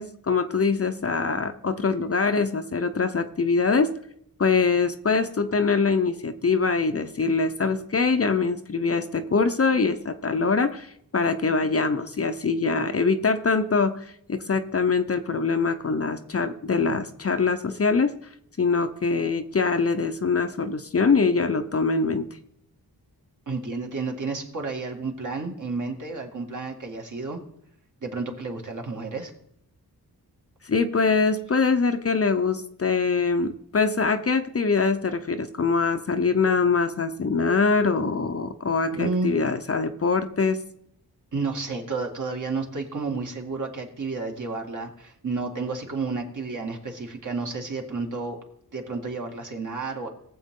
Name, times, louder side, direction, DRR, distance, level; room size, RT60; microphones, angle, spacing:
voice 1, 0.0-3.9 4.4-18.1 18.6-22.3 30.6-40.6, left 4 dB, 40° left, 7 dB, 0.7 m, -23 dB
voice 2, 23.5-27.4 28.0-29.3 38.9-39.3 41.3-48.4 48.7-50.1, right 3 dB, 50° right, 1 dB, 2.0 m, -31 dB
19.0 x 7.6 x 3.7 m, 0.73 s
wide cardioid pair, 130°, 38 cm